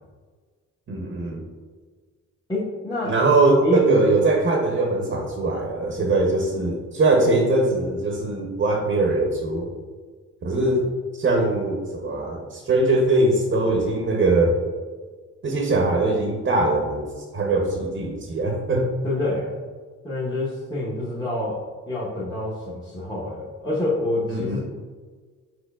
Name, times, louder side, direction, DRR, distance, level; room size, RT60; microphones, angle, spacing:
voice 1, 0.9-1.4 3.0-9.7 10.4-10.8 11.2-14.6 15.4-18.8 24.3-24.6, right 2 dB, 40° right, 0 dB, 0.8 m, -21 dB
voice 2, 2.5-3.3 3.6-4.0 19.0-19.6 20.0-21.6 21.9-24.6, left 2 dB, 15° left, -8 dB, 1.0 m, -27 dB
4.5 x 4.4 x 2.4 m, 1.5 s
cardioid pair, 90°, 30 cm